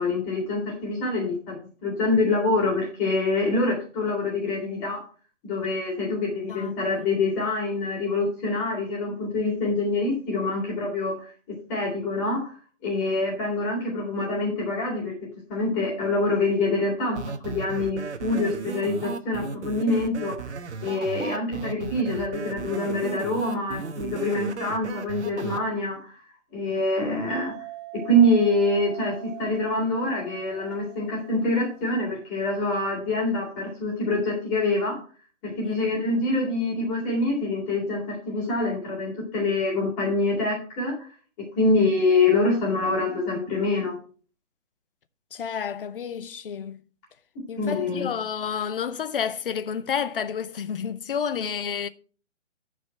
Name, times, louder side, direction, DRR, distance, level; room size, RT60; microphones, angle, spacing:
voice 1, 0.0-5.0 5.4-11.3 11.7-12.6 12.8-15.1 15.5-17.2 17.4-20.5 20.8-26.2 26.5-27.5 27.9-35.0 35.4-41.1 41.6-44.0 47.6-48.1, left 2 dB, 20° left, 3.5 m, -25 dB
voice 2, 6.5-7.1 35.6-35.9 45.3-46.8 47.5-51.9, left 7 dB, 45° left, 0.8 m, -30 dB
sound 1, 17.2-25.6, right 5 dB, 65° right, 1.2 m, -35 dB
sound 2, 27.3-32.0, right 15 dB, 35° right, 3.2 m, -42 dB
14.0 x 5.1 x 4.5 m
hypercardioid pair, 155°, 37 cm